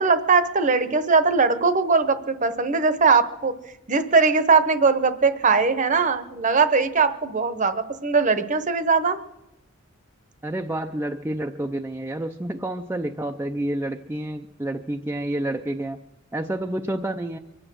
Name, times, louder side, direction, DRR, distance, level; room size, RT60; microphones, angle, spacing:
voice 1, 0.0-3.5 3.9-9.2, right 4 dB, 40° right, 11 dB, 0.9 m, -20 dB
voice 2, 10.4-16.0 16.3-17.4, right 1 dB, 10° right, 3 dB, 0.5 m, -29 dB
23.5 x 10.0 x 6.2 m, 0.92 s
head